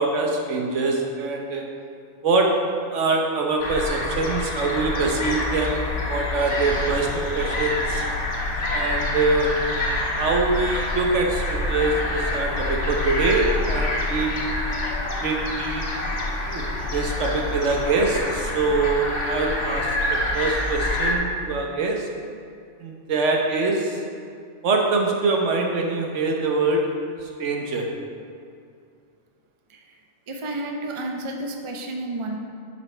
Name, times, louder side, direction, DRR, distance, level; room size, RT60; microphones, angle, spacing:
voice 1, 0.0-1.7 2.2-2.5 2.9-8.0 8.7-9.5 10.2-14.4 15.2-16.2 16.5-22.1 22.8-24.0 24.6-26.9 27.2-27.9, right 3 dB, 85° right, 1 dB, 1.3 m, -24 dB
sound 1, 3.6-21.1, left 1 dB, 80° left, 1.4 m, -26 dB
voice 2, 30.3-32.4, right 2 dB, 30° right, 2 dB, 0.6 m, -31 dB
10.5 x 5.9 x 3.3 m, 2.3 s
omnidirectional pair, 1.2 m